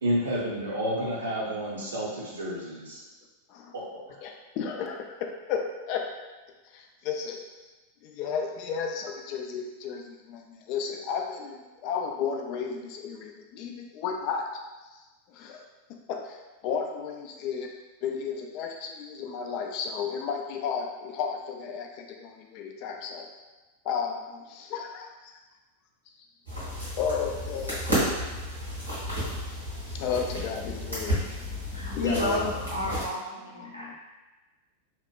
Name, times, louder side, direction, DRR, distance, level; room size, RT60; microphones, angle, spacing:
voice 1, 0.0-3.0 3.7-4.2, equal, 70° right, -5 dB, 0.7 m, -30 dB
voice 2, 4.2-6.1 6.7-7.4 8.0-14.5 15.3-15.6 16.1-16.4 16.6-17.7 18.0-23.3 23.8-25.3 27.0-27.8 29.9-31.2 31.9-32.5 33.6-33.9, left 6 dB, 45° left, 2 dB, 0.3 m, -33 dB
sound 1, 26.5-33.1, equal, 85° right, 1.1 m, -32 dB
voice 3, 31.7-33.9, right 1 dB, 80° left, -5 dB, 0.7 m, -32 dB
2.9 x 2.1 x 2.3 m, 1.2 s
figure-of-eight pair, 90°, 0 cm